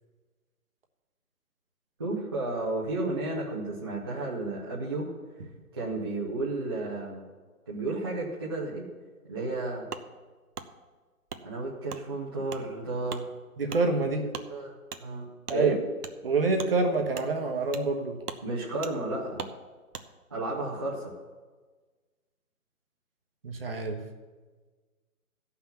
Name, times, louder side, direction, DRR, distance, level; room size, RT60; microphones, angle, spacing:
voice 1, 2.0-5.1 5.7-7.2 7.7-8.8 9.3-9.9 11.4-13.3 14.5-14.7 15.0-15.2 15.5-15.8 18.4-19.5 20.3-21.1, right 2 dB, 15° right, -6 dB, 0.7 m, -32 dB
Wood, 9.9-10.1 10.5-10.7 11.3-11.4 11.9-12.0 12.5-12.6 13.1-13.2 13.7-13.8 14.3-14.5 14.9-15.0 15.4-15.6 16.0-16.1 16.6-16.7 17.1-17.3 17.7-17.9 18.2-18.4 18.8-18.9 19.4-19.5 19.9-20.1, right 6 dB, 90° right, 1.0 m, -39 dB
voice 2, 13.6-14.3 15.5-15.7 16.2-18.3 23.4-24.0, right 3 dB, 40° right, 4 dB, 1.2 m, -27 dB
14.0 x 5.9 x 7.0 m, 1.4 s
hypercardioid pair, 165°, 45 cm